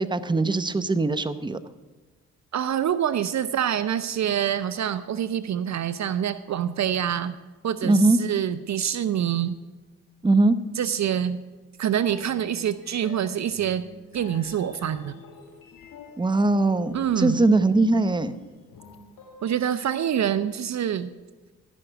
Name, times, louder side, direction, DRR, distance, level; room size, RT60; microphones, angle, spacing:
voice 1, 0.0-1.6 7.8-8.2 10.2-10.6 16.2-18.3, right 2 dB, 15° right, 13 dB, 0.8 m, -21 dB
voice 2, 2.5-7.4 7.6-9.5 10.8-11.4 11.8-13.9 14.1-15.2 16.9-17.5 19.4-21.1, right 9 dB, 50° right, 14 dB, 0.6 m, -26 dB
sound 1, 12.1-19.6, left 5 dB, 65° left, 2.0 m, -47 dB
14.0 x 6.1 x 7.8 m, 1.3 s
hypercardioid pair, 45°, 35 cm